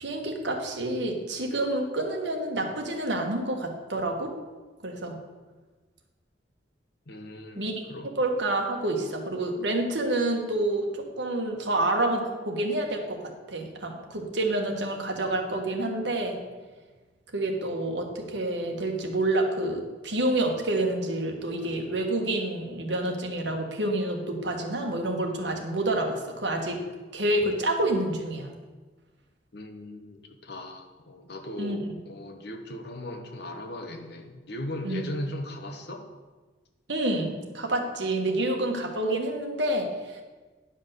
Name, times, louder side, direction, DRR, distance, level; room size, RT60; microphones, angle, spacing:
voice 1, 0.0-4.3 4.8-5.2 7.5-7.7 8.2-16.4 17.3-26.8 27.1-28.5 31.6-31.9 34.8-35.1 36.9-40.2, right 1 dB, 70° right, 2 dB, 1.5 m, -28 dB
voice 2, 7.1-8.1 29.5-36.1, left 1 dB, 60° left, 5 dB, 1.2 m, -38 dB
10.0 x 5.4 x 6.7 m, 1.3 s
head